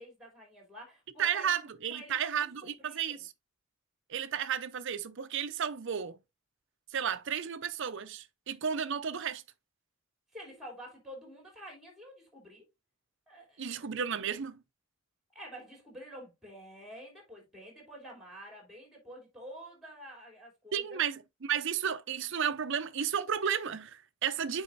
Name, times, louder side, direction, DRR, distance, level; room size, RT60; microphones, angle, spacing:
voice 1, 0.0-1.6 1.9-3.3 10.3-12.6 13.3-13.9 15.3-21.0, equal, ahead, 3.2 m, -49 dB
voice 2, 1.2-3.3 4.1-6.2 6.9-9.4 13.6-14.6 20.7-24.6, right 8 dB, 60° right, 0.6 m, -33 dB
8.4 x 4.8 x 2.6 m
head